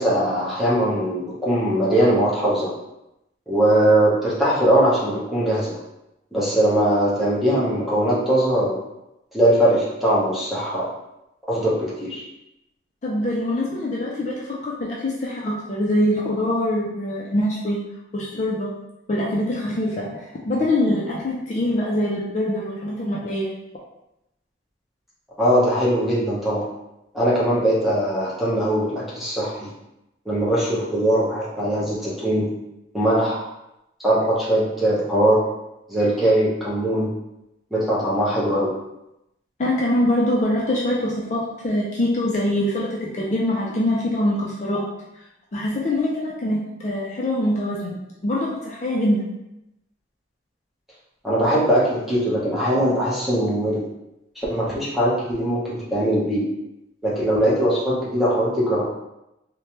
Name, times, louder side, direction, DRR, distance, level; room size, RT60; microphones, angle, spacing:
voice 1, 0.0-2.7 3.5-5.8 6.3-8.8 9.3-10.9 11.5-12.2 25.4-26.6 27.1-29.7 30.3-32.5 32.9-33.4 34.0-35.4 35.9-37.1 37.7-38.7 51.2-53.8 54.4-56.5 57.0-58.8, right 1 dB, ahead, -7 dB, 0.7 m, -20 dB
voice 2, 13.0-17.8 18.1-18.7 19.1-23.5 39.6-44.9 45.5-49.3, left 1 dB, 40° left, -3 dB, 0.4 m, -24 dB
3.1 x 2.1 x 2.8 m, 0.89 s
head